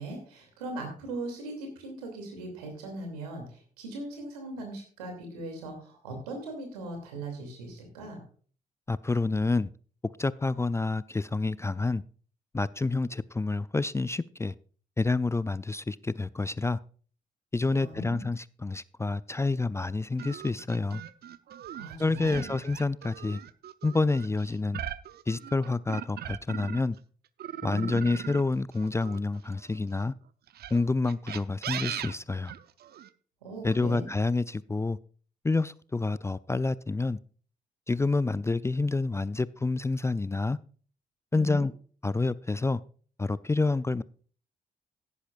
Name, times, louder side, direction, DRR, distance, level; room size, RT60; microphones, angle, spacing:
voice 1, 0.0-8.2 17.7-18.2 21.7-22.4 27.7-28.0 33.4-34.1 41.3-41.7, right 1 dB, 85° right, 2.7 m, -39 dB
voice 2, 8.9-9.7 10.2-12.0 12.5-14.5 15.0-16.8 17.5-21.0 22.0-23.4 23.8-24.8 25.3-27.0 27.6-30.1 30.7-32.5 33.6-35.0 35.4-37.2 37.9-40.6 41.3-41.7 42.0-42.8 43.2-44.0, left 3 dB, 15° left, 0.4 m, -28 dB
sound 1, 20.2-27.0 27.4-29.8 30.5-33.1, right 10 dB, 55° right, 0.6 m, -40 dB
16.0 x 9.9 x 2.5 m
hypercardioid pair, 40°, 20 cm